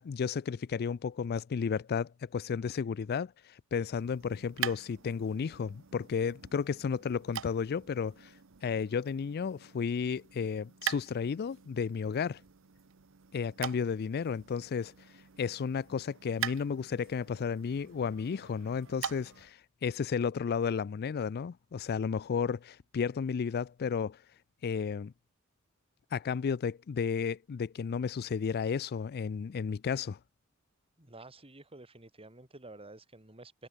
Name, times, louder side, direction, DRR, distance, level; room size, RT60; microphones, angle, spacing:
voice 1, 0.0-8.3 8.6-12.4 13.3-14.9 15.4-24.2 24.6-25.1 26.1-30.2, left 6 dB, 50° left, 0.4 m, -33 dB
sound 1, 3.9-19.5, right 9 dB, 65° right, 0.9 m, -44 dB
voice 2, 31.0-33.7, right 2 dB, 25° right, 3.6 m, -51 dB
head